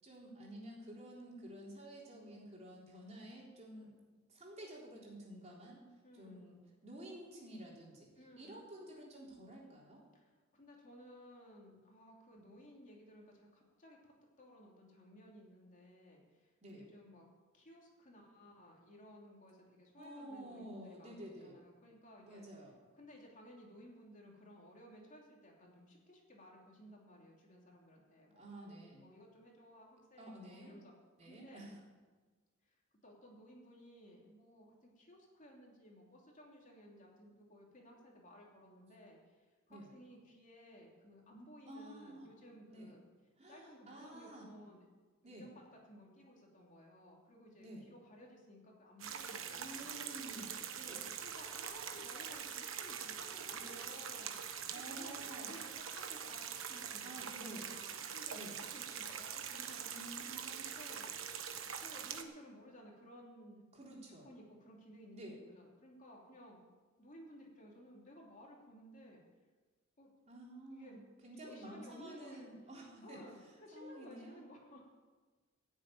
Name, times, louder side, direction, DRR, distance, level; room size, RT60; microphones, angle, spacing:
voice 1, 0.0-3.9 4.3-5.8 6.1-8.1 8.4-10.0 16.6-16.9 20.0-21.6 22.2-22.7 28.4-29.1 30.2-30.7 31.2-31.8 39.7-39.9 41.7-42.3 42.7-42.9 43.4-44.5 45.2-45.5 47.6-47.9 49.5-51.1 53.4-53.8 54.7-55.5 57.0-57.7 58.3-58.6 59.9-60.4 63.7-64.3 65.1-65.4 70.3-73.2 73.7-74.4, right 1 dB, 35° right, -3 dB, 3.7 m, -51 dB
voice 2, 2.1-2.4 6.0-6.5 8.2-8.6 10.1-17.3 17.5-22.5 22.9-30.9 31.3-31.7 32.6-32.8 33.0-43.1 43.5-44.8 45.2-50.0 50.9-59.9 60.5-61.2 61.8-63.6 64.2-66.6 67.0-69.2 70.0-70.1 70.7-71.0 71.3-72.5 73.0-74.8, equal, 40° left, -1 dB, 3.1 m, -57 dB
sound 1, 49.0-62.2, right 8 dB, 70° right, 1.2 m, -44 dB
16.0 x 7.4 x 9.1 m, 1.3 s
head